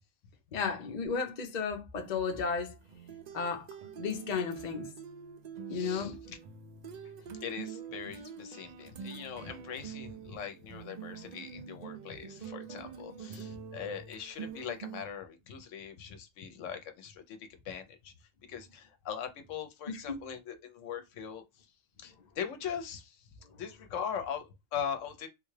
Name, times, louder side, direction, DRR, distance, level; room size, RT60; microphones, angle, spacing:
voice 1, 0.5-2.7 3.3-3.6 4.0-4.9 5.7-6.2 19.9-20.2, left 5 dB, 40° left, 0.7 m, -33 dB
sound 1, 1.9-15.0, right 7 dB, 65° right, 0.4 m, -45 dB
voice 2, 5.7-6.1 7.4-17.4 17.6-18.1 18.4-21.7 22.0-23.3 23.6-25.3, left 7 dB, 80° left, 1.0 m, -41 dB
3.6 x 2.3 x 3.1 m
omnidirectional pair, 1.3 m